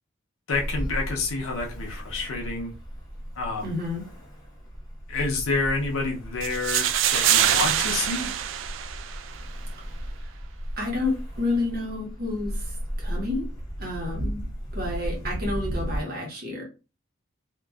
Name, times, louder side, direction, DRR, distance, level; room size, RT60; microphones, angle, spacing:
voice 1, 0.5-2.7 3.4-3.7 5.1-8.3, left 3 dB, 90° left, 0 dB, 0.7 m, -28 dB
Ocean, 0.5-16.0, equal, 20° left, 1.0 m, -35 dB
voice 2, 3.6-4.0 10.1-10.3 10.8-13.5 13.8-14.4 14.7-16.6, left 2 dB, 50° right, -1 dB, 1.2 m, -30 dB
sound 1, 6.4-9.4, right 10 dB, 70° right, 0.3 m, -24 dB
2.9 x 2.6 x 2.3 m, 0.31 s
head